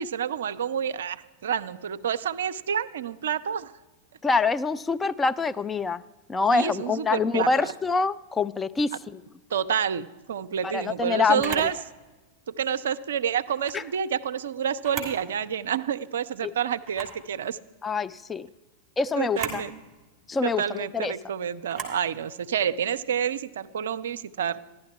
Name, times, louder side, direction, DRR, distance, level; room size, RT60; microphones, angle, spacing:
voice 1, 0.0-3.7 6.5-7.7 9.5-11.7 12.5-17.6 19.2-19.8 20.4-24.6, right 8 dB, 65° right, 14 dB, 0.4 m, -29 dB
voice 2, 4.2-6.0 6.3-9.2 10.6-11.7 13.7-13.8 16.4-16.5 17.8-18.5 19.0-19.6 20.3-21.1, left 4 dB, 15° left, 11 dB, 0.4 m, -25 dB
Camera, 11.4-11.7 13.5-13.8 14.7-15.2 15.7-15.8 16.8-17.2 19.2-19.6 21.7-22.0, right 5 dB, 20° right, 3.0 m, -35 dB
14.5 x 11.5 x 4.5 m, 1.2 s
figure-of-eight pair, 90°, 0 cm